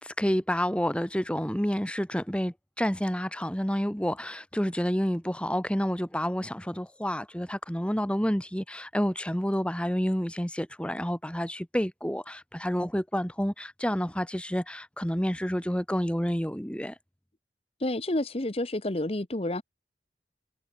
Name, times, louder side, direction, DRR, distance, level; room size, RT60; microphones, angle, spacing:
voice 1, 0.0-17.0, equal, 5° left, 1.8 m, -29 dB
voice 2, 17.8-19.6, left 1 dB, 35° left, 1.1 m, -29 dB
head